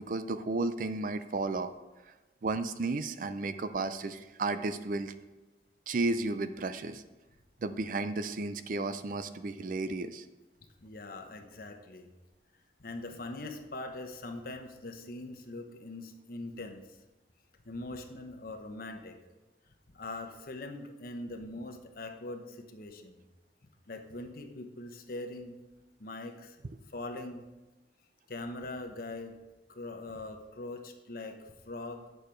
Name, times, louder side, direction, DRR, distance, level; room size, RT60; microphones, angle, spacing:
voice 1, 0.0-1.7 2.4-5.1 5.9-7.0 7.6-10.2, right 3 dB, 50° right, 11 dB, 0.4 m, -33 dB
voice 2, 10.8-12.1 12.8-17.0 17.6-19.2 19.9-23.2 23.9-25.6 26.0-26.6 26.9-27.5 28.3-29.3 29.7-32.0, left 2 dB, 55° left, 5 dB, 0.9 m, -42 dB
8.6 x 6.7 x 4.5 m, 1.1 s
head